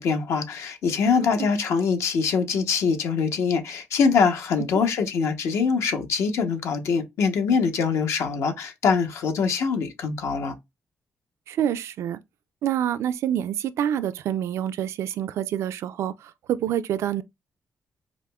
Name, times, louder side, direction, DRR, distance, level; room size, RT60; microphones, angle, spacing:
voice 1, 0.0-10.5, left 5 dB, 80° left, 0.8 m, -23 dB
voice 2, 11.5-12.2 12.6-16.1 16.5-17.2, right 10 dB, 80° right, 0.3 m, -26 dB
4.9 x 2.0 x 2.2 m
cardioid pair, 95°, 5 cm